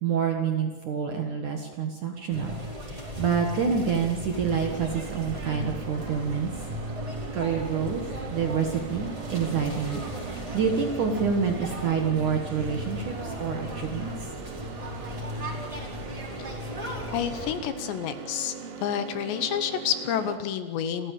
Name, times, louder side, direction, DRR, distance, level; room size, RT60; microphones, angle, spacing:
voice 1, 0.0-6.5 7.3-8.0 8.3-14.1, right 6 dB, 60° right, 3 dB, 2.3 m, -28 dB
sound 1, 2.3-17.6, left 1 dB, 10° right, 4.3 m, -36 dB
sound 2, 4.6-20.4, right 6 dB, 80° right, 4.3 m, -41 dB
voice 2, 17.1-18.5 18.8-21.1, left 9 dB, 75° left, 10 dB, 3.0 m, -29 dB
28.5 x 14.5 x 8.3 m, 1.4 s
omnidirectional pair, 5.5 m